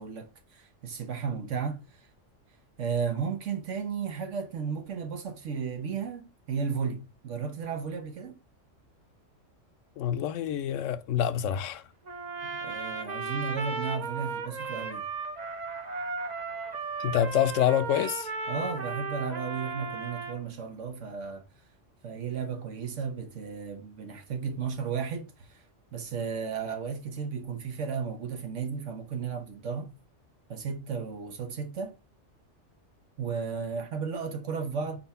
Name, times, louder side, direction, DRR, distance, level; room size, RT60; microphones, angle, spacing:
voice 1, 0.0-2.0 2.8-8.4 12.4-15.1 18.5-21.4 22.0-25.6 25.9-29.9 30.5-32.0 33.2-35.0, right 6 dB, 75° right, 1.3 m, -34 dB
voice 2, 10.0-11.8 17.0-18.3, left 10 dB, 85° left, 1.0 m, -27 dB
Trumpet, 12.0-20.4, right 4 dB, 40° right, 0.8 m, -35 dB
4.4 x 4.1 x 5.4 m
omnidirectional pair, 1.3 m